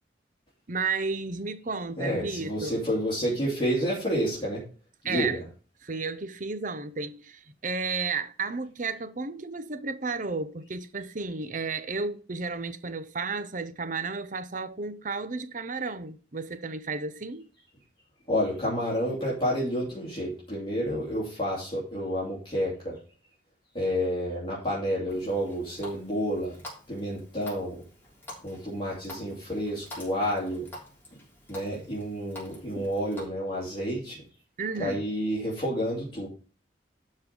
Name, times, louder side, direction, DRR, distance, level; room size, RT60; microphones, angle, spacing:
voice 1, 0.7-2.8 5.0-5.4 5.8-17.5 34.6-35.0, right 4 dB, 45° right, 0.8 m, -33 dB
voice 2, 2.0-4.6 5.0-5.4 18.3-22.9 23.7-26.6 26.9-27.8 28.4-30.7 31.5-34.2 34.8-36.3, equal, 25° left, 2.8 m, -29 dB
Water tap faucet, 25.1-33.3, left 1 dB, 10° left, 3.4 m, -47 dB
12.0 x 4.3 x 5.4 m
head